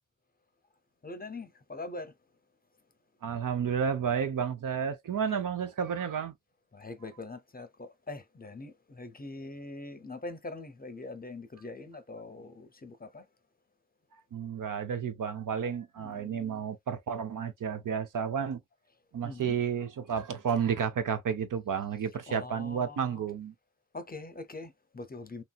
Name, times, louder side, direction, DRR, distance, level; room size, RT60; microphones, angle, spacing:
voice 1, 1.0-2.1 6.7-13.2 16.0-16.6 19.2-19.5 22.3-23.2 23.9-25.4, left 2 dB, 25° left, 0.6 m, -43 dB
voice 2, 3.2-6.3 14.3-18.6 19.1-23.5, right 7 dB, 65° right, 0.7 m, -31 dB
3.0 x 2.6 x 2.3 m
cardioid pair, 50°, 34 cm